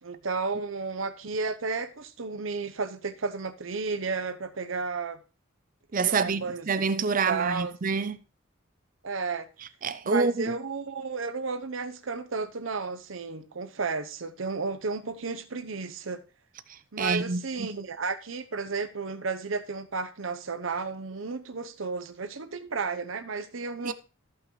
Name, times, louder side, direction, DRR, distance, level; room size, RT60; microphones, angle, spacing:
voice 1, 0.0-5.2 6.2-6.7 7.3-7.7 9.0-9.5 10.0-16.2 16.9-23.9, right 4 dB, 70° right, 0.8 m, -33 dB
voice 2, 5.9-8.2 9.8-10.6 16.7-17.7 23.8-23.9, right 4 dB, 40° right, 0.5 m, -27 dB
14.0 x 5.8 x 3.1 m
head